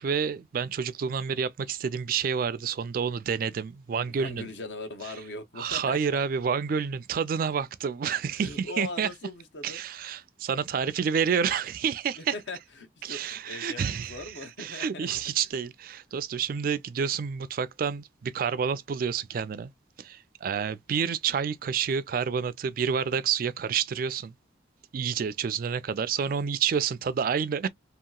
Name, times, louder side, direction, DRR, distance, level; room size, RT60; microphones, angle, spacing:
voice 1, 0.0-4.5 5.6-9.1 9.6-12.3 13.0-19.7 20.0-24.3 24.9-27.7, right 7 dB, 50° right, 0.3 m, -29 dB
voice 2, 4.1-6.0 8.4-9.8 12.2-15.1, left 2 dB, 70° left, 0.8 m, -40 dB
2.9 x 2.8 x 2.3 m
head